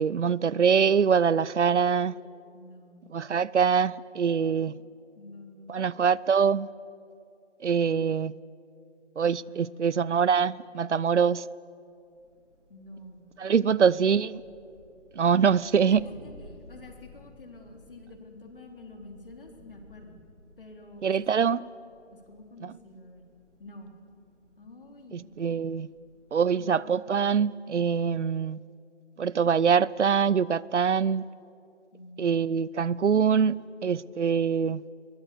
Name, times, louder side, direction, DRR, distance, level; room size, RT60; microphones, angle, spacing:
voice 1, 0.0-2.1 3.1-4.7 5.7-6.7 7.6-8.3 9.2-11.4 13.4-14.4 15.2-16.0 21.0-21.6 22.6-22.7 25.1-25.9 26.3-28.6 29.2-31.2 32.2-34.8, right 6 dB, 75° right, 0.7 m, -24 dB
voice 2, 2.5-3.1 4.5-4.7 5.2-6.0 9.4-9.9 12.7-13.3 13.6-13.8 15.9-20.2 20.6-21.7 22.1-23.2 23.6-24.0 24.6-25.3 26.5-26.7 31.9-32.6, left 2 dB, 45° left, 3.8 m, -48 dB
Thunder, 11.9-26.5, left 1 dB, ahead, 3.3 m, -56 dB
29.5 x 22.5 x 6.9 m
hypercardioid pair, 175°, 36 cm